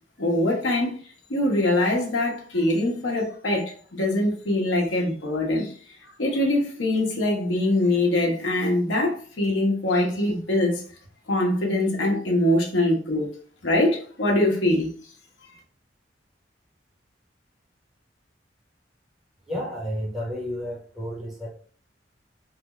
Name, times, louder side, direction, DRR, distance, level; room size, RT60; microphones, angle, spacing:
voice 1, 0.2-1.0 1.3-5.7 6.2-10.8 11.3-13.4 13.6-14.9, left 1 dB, 90° left, 0.9 m, -23 dB
voice 2, 19.5-21.5, equal, ahead, 1.1 m, -31 dB
3.3 x 2.4 x 2.9 m
head